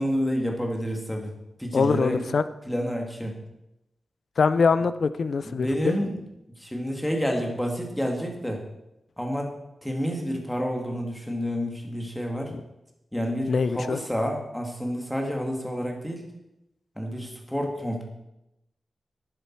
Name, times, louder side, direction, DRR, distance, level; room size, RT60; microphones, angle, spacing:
voice 1, 0.0-1.3 1.6-2.3 2.6-3.3 5.4-6.2 6.6-8.6 9.2-9.5 9.8-12.5 13.1-16.2 17.0-18.0, equal, 5° left, 1 dB, 2.1 m, -29 dB
voice 2, 1.7-2.4 4.4-5.7 12.5-12.6 13.5-14.0, left 5 dB, 60° left, 14 dB, 0.6 m, -23 dB
11.5 x 10.5 x 4.6 m, 0.89 s
wide cardioid pair, 145°, 0 cm